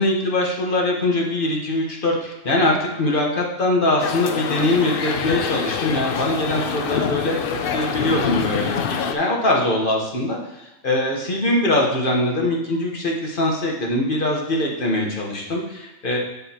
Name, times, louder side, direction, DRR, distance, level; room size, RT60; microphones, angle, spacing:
voice 1, 0.0-7.4 7.7-16.2, left 1 dB, 45° left, -1 dB, 1.4 m, -22 dB
sound 1, 4.0-9.1, left 6 dB, 60° left, 0.6 m, -25 dB
7.9 x 7.2 x 2.9 m, 0.94 s
omnidirectional pair, 1.3 m